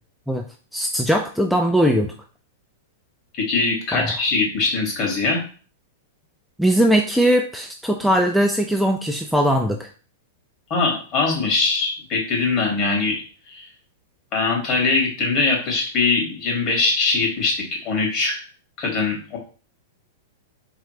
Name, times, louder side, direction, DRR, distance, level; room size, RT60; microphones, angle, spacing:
voice 1, 0.7-2.1 3.9-4.2 6.6-9.9, equal, ahead, 3 dB, 0.4 m, -20 dB
voice 2, 3.4-5.4 10.7-13.2 13.5-13.7 14.3-18.4 18.8-19.4, left 3 dB, 40° left, -1 dB, 2.4 m, -22 dB
4.1 x 3.6 x 3.3 m, 0.39 s
hypercardioid pair, 120°, 0 cm